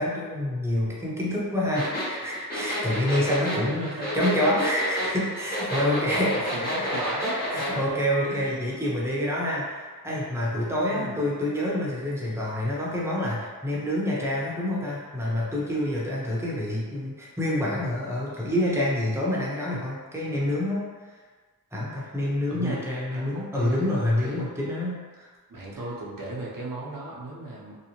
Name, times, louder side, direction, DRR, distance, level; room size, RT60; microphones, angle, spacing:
voice 1, 0.0-20.8 21.7-25.3, left 1 dB, 5° right, -6 dB, 0.6 m, -27 dB
sound 1, 1.8-7.7, equal, 25° left, 0.9 m, -30 dB
voice 2, 3.7-4.1 6.1-8.6 10.9-11.2 22.5-22.8 23.1-24.4 25.5-27.8, right 2 dB, 60° right, -5 dB, 0.7 m, -36 dB
2.7 x 2.0 x 2.8 m, 1.4 s
wide cardioid pair, 60°, 38 cm